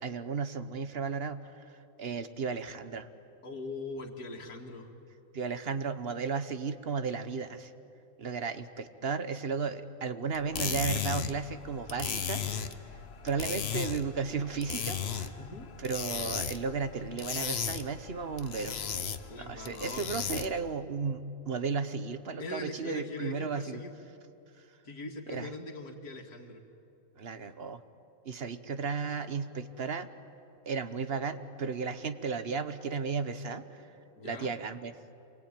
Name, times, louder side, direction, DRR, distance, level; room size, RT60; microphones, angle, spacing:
voice 1, 0.0-1.4 2.0-3.1 5.3-7.7 8.2-12.6 13.2-15.4 15.8-18.8 19.5-23.8 25.3-25.5 27.2-27.8 28.2-30.1 30.7-33.6 34.2-34.9, right 5 dB, 45° right, 11 dB, 1.2 m, -34 dB
voice 2, 3.4-4.9 15.4-15.7 19.3-20.1 22.4-23.9 24.8-26.6 34.2-34.5, left 2 dB, 85° left, 1 dB, 2.7 m, -41 dB
sound 1, 10.3-20.7, left 7 dB, 50° left, 1.1 m, -36 dB
27.5 x 22.5 x 9.1 m, 2.7 s
omnidirectional pair, 1.5 m